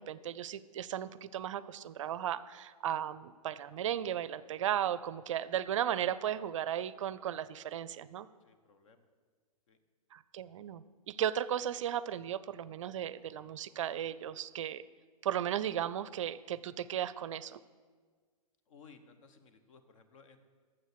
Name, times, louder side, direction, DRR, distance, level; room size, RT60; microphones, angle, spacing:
voice 1, 0.0-8.3 10.1-14.8 15.2-17.6, right 10 dB, 55° right, 17 dB, 0.4 m, -35 dB
voice 2, 8.4-9.1 9.7-9.8 18.7-20.4, left 5 dB, 55° left, 9 dB, 1.1 m, -59 dB
9.1 x 7.4 x 6.7 m, 1.5 s
figure-of-eight pair, 110°, 19 cm